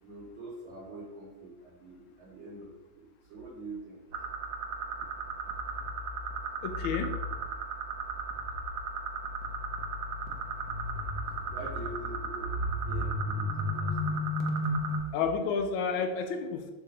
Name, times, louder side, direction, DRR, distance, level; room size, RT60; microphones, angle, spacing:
voice 1, 0.0-4.0 11.5-12.6 12.8-14.2, right 2 dB, 65° right, -6 dB, 1.6 m, -45 dB
sound 1, 4.1-15.0, right 1 dB, 85° right, 0.8 m, -34 dB
voice 2, 6.6-7.1 15.1-16.7, left 5 dB, 75° left, 6 dB, 1.2 m, -30 dB
3.8 x 2.7 x 4.8 m, 1.1 s
omnidirectional pair, 2.4 m